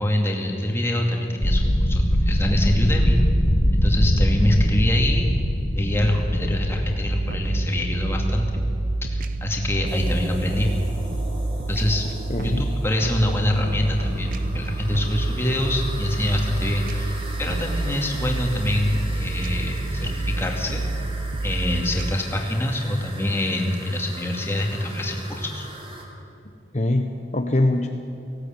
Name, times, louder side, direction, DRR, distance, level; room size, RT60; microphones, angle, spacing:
voice 1, 0.0-3.2 3.7-5.3 5.7-8.5 9.0-10.7 11.7-12.1 12.4-20.8 21.4-25.7, left 1 dB, 15° left, 1 dB, 2.5 m, -25 dB
sound 1, 1.4-13.3 13.5-13.9 14.2-14.4, equal, 80° left, 2.0 m, -24 dB
sound 2, 7.1-22.1, right 2 dB, 50° right, 0.5 m, -28 dB
sound 3, 9.9-26.0, right 1 dB, 30° right, 3.0 m, -40 dB
voice 2, 12.3-12.7 26.7-27.9, left 1 dB, 40° left, 4 dB, 0.9 m, -23 dB
18.5 x 16.0 x 9.0 m, 2.8 s
head